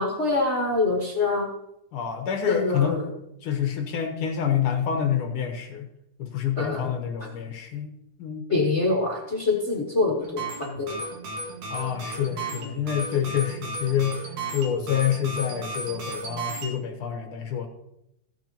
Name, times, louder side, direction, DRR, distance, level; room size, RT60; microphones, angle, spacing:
voice 1, 0.0-1.5 2.4-3.1 6.6-6.9 8.5-11.0, left 3 dB, 50° left, -3 dB, 0.8 m, -25 dB
voice 2, 1.9-3.0 3.4-5.9 6.2-7.9 8.2-8.4 11.7-14.2 14.5-17.7, left 9 dB, 65° left, 4 dB, 1.3 m, -27 dB
sound 1, 10.2-16.7, right 2 dB, 70° right, 3.5 m, -34 dB
15.5 x 9.1 x 2.9 m, 0.80 s
omnidirectional pair, 3.8 m